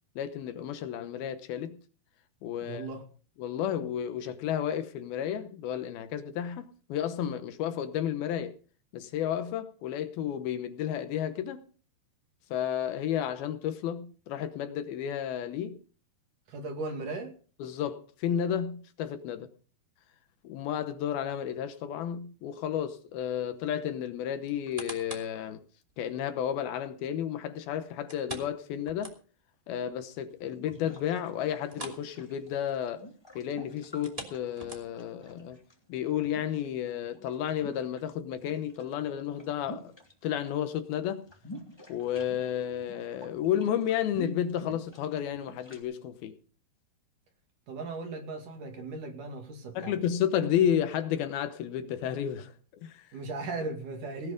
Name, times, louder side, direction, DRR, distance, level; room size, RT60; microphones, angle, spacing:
voice 1, 0.2-1.8 2.4-2.9 3.4-8.6 8.9-11.7 12.5-15.8 17.6-19.5 20.4-25.6 26.0-29.2 29.7-33.0 33.4-35.6 35.9-39.9 40.2-41.3 41.9-46.4 49.8-52.5 52.8-53.1, left 9 dB, 75° left, 2.7 m, -32 dB
voice 2, 2.6-3.0 16.5-17.3 47.7-49.9 53.1-54.3, right 3 dB, 55° right, 3.6 m, -37 dB
sound 1, 24.5-25.4 25.9-26.0 28.1-29.5 29.9-30.0 30.4-30.5 31.6-32.1 32.4-32.6 33.9-35.1 35.8-35.9, right 1 dB, 10° right, 1.9 m, -43 dB
sound 2, 30.3-35.7 36.2-38.0 38.3-40.6 40.8-45.8, equal, 10° left, 2.0 m, -48 dB
18.0 x 9.4 x 5.2 m
omnidirectional pair, 4.6 m